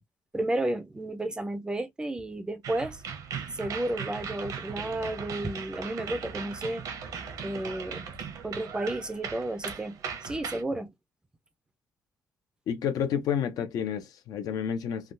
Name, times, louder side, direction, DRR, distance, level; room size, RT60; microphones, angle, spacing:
voice 1, 0.3-3.0 3.5-6.8 7.4-8.1 8.4-10.9, right 1 dB, 15° right, 0.5 m, -32 dB
sound 1, 2.6-10.6, right 7 dB, 70° right, 0.9 m, -38 dB
voice 2, 12.7-15.1, left 8 dB, 80° left, 0.8 m, -30 dB
3.5 x 2.3 x 2.6 m
cardioid pair, 155°, 6 cm